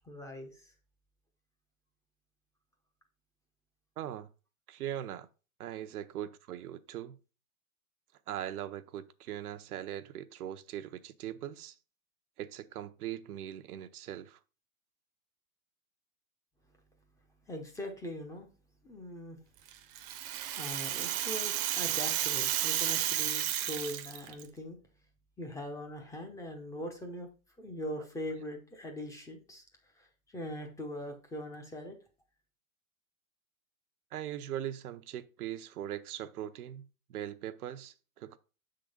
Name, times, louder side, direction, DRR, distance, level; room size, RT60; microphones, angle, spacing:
voice 1, 0.0-0.7 17.5-18.5 18.8-19.4 20.5-24.8 25.4-27.3 27.6-29.6 30.0-32.0, left 1 dB, 5° left, 0.7 m, -41 dB
voice 2, 4.0-4.3 4.7-5.3 5.6-7.2 8.3-11.7 12.4-14.4 34.1-38.4, right 11 dB, 85° right, 0.8 m, -40 dB
Rattle (instrument), 19.7-24.4, right 12 dB, 40° right, 0.7 m, -32 dB
6.8 x 3.8 x 5.1 m
supercardioid pair, 145°, 43 cm